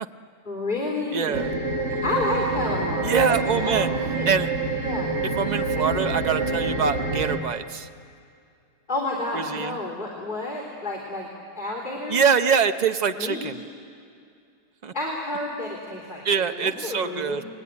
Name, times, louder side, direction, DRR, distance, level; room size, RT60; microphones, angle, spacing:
voice 1, 0.5-1.5 1.9-4.3 4.8-5.1 8.9-11.3 11.6-12.2 13.1-13.6 14.9-17.4, left 2 dB, 25° left, -3 dB, 3.6 m, -30 dB
voice 2, 1.1-1.5 3.0-3.9 4.3-4.5 5.4-7.9 9.3-9.8 12.1-13.5 14.8-14.9 16.2-17.4, right 6 dB, 60° right, 8 dB, 0.4 m, -24 dB
sound 1, 1.3-7.4, right 3 dB, 40° right, 1.9 m, -27 dB
29.0 x 21.0 x 9.7 m, 2.4 s
omnidirectional pair, 1.9 m